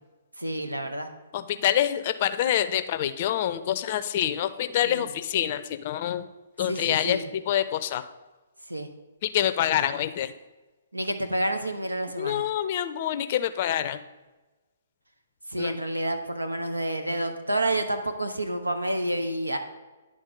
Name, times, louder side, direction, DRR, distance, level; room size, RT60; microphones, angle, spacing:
voice 1, 0.4-1.1 4.8-5.1 6.7-7.3 8.7-8.9 10.9-12.4 15.5-19.6, right 1 dB, 90° right, 7 dB, 0.9 m, -29 dB
voice 2, 1.3-6.3 6.6-8.1 9.2-10.3 12.2-14.0 15.6-15.7, left 11 dB, 40° left, 12 dB, 0.5 m, -26 dB
10.5 x 3.6 x 5.2 m, 1.2 s
figure-of-eight pair, 125°, 0 cm